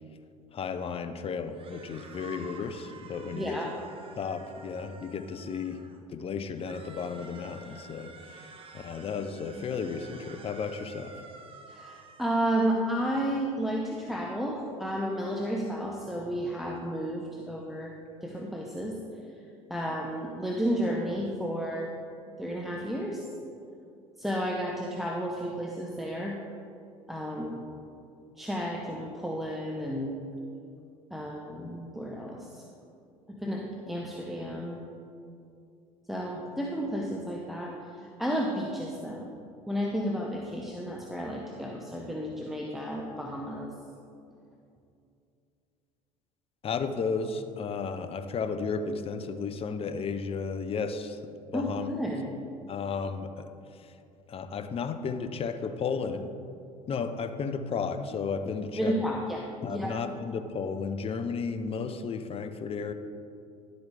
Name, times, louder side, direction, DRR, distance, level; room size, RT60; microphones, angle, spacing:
voice 1, 0.5-3.6 4.2-5.8 6.1-11.2 46.6-51.2 51.5-51.9 52.7-53.5 53.8-53.9 54.3-56.3 56.9-59.1 59.6-62.9, left 5 dB, 35° left, 10 dB, 0.7 m, -33 dB
sound 1, 1.5-6.0 6.5-12.3, right 4 dB, 30° right, 1.1 m, -50 dB
voice 2, 3.3-3.7 11.7-17.9 18.2-19.0 19.7-21.9 22.4-23.2 24.2-26.4 27.1-27.6 28.4-30.2 31.1-32.6 33.3-34.8 36.1-39.3 39.7-43.7 51.5-52.4 58.7-59.9, equal, ahead, -1 dB, 0.9 m, -32 dB
11.5 x 8.0 x 3.5 m, 2.5 s
hypercardioid pair, 70°, 18 cm